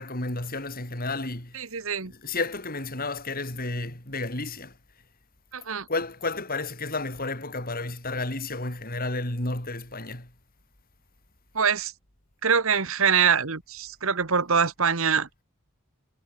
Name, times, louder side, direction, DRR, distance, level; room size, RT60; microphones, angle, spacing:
voice 1, 0.0-1.6 2.1-4.7 5.9-10.3, left 2 dB, 40° left, 6.4 m, -31 dB
voice 2, 1.5-2.1 5.5-5.9 11.5-11.9 12.4-15.4, right 6 dB, 65° right, 1.5 m, -24 dB
head